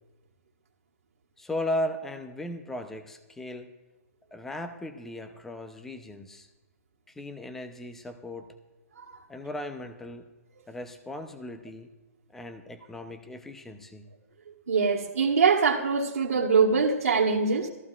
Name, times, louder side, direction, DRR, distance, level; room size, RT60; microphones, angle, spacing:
voice 1, 1.4-3.7 4.3-6.5 7.1-8.5 9.3-10.2 10.7-11.9 12.3-14.1, left 1 dB, 5° left, 8 dB, 0.6 m, -36 dB
voice 2, 14.7-17.7, right 5 dB, 90° right, -5 dB, 1.6 m, -23 dB
17.0 x 14.0 x 2.4 m, 1.1 s
hypercardioid pair, 160°, 8 cm